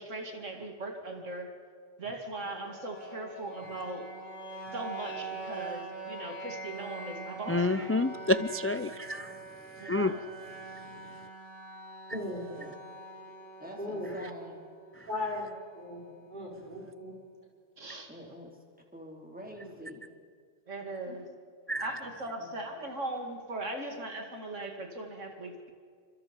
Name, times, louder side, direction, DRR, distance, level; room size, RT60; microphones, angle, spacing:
voice 1, 0.0-1.5 2.0-4.1 4.7-8.0 9.8-10.2 17.8-18.1 20.7-21.3 21.8-25.7, right 2 dB, 85° right, 4 dB, 2.7 m, -39 dB
sound 1, 2.5-16.4, right 3 dB, 45° left, 6.3 m, -44 dB
voice 2, 7.5-9.4 9.9-10.2 21.7-21.9, left 2 dB, 20° left, 11 dB, 0.3 m, -28 dB
voice 3, 12.1-12.4 13.8-14.1 15.1-16.0 16.3-17.1 21.1-21.2, left 1 dB, 40° right, -3 dB, 6.0 m, -37 dB
voice 4, 13.6-14.6 18.1-18.6 18.9-20.1 22.4-22.6, equal, 5° right, 0 dB, 4.1 m, -46 dB
28.5 x 26.5 x 5.3 m, 2.1 s
omnidirectional pair, 1.2 m